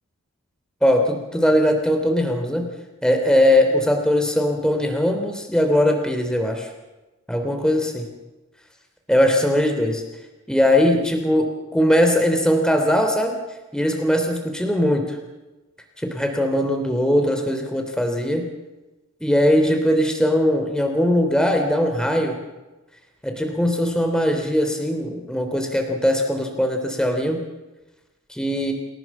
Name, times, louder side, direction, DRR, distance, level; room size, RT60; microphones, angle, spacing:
voice 1, 0.8-2.7 3.0-6.7 7.3-8.1 9.1-10.0 10.5-13.4 13.7-15.2 16.0-18.4 19.2-22.4 23.2-27.4 28.3-28.7, left 1 dB, 5° left, 4 dB, 3.2 m, -20 dB
28.5 x 17.0 x 7.3 m, 1.1 s
head